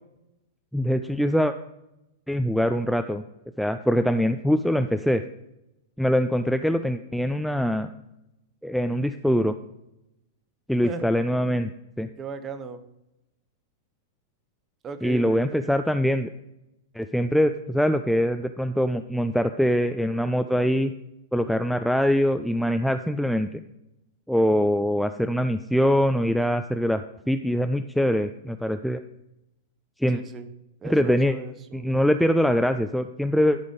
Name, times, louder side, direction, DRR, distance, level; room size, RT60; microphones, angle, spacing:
voice 1, 0.7-1.5 2.3-3.2 3.6-5.2 6.0-7.9 8.6-9.5 10.7-11.7 12.0-12.1 15.0-16.3 16.9-20.9 21.3-23.6 24.3-29.0 30.0-30.2 30.9-31.3 31.7-33.6, equal, ahead, 8 dB, 0.3 m, -23 dB
voice 2, 12.2-12.8 14.8-15.4 30.1-30.5 30.8-32.0, right 5 dB, 25° right, 10 dB, 0.9 m, -37 dB
11.5 x 5.1 x 5.0 m, 0.88 s
figure-of-eight pair, 100°, 0 cm